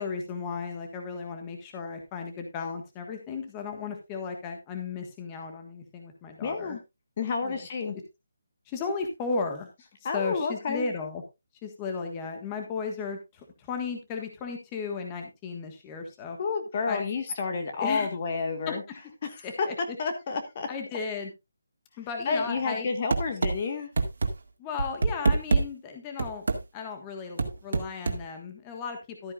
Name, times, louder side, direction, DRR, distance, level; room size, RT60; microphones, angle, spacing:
voice 1, 0.0-6.8 7.4-7.6 8.7-9.7 10.1-11.2 11.6-16.4 16.9-17.0 17.8-18.1 18.7-18.8 19.4-19.7 20.7-21.3 22.0-22.9 24.6-26.4 26.7-29.3, left 5 dB, 15° left, 4 dB, 1.5 m, -35 dB
voice 2, 6.4-6.8 7.2-7.9 10.0-10.9 16.4-18.8 19.2-19.7 20.0-20.7 22.2-23.9, left 4 dB, 35° left, 6 dB, 1.5 m, -30 dB
sound 1, 23.1-23.5 24.0-24.3 24.8-25.6 26.2-26.6 27.4-28.2, right 4 dB, 65° right, 2.1 m, -24 dB
13.5 x 9.4 x 2.5 m, 0.23 s
hypercardioid pair, 165°, 0 cm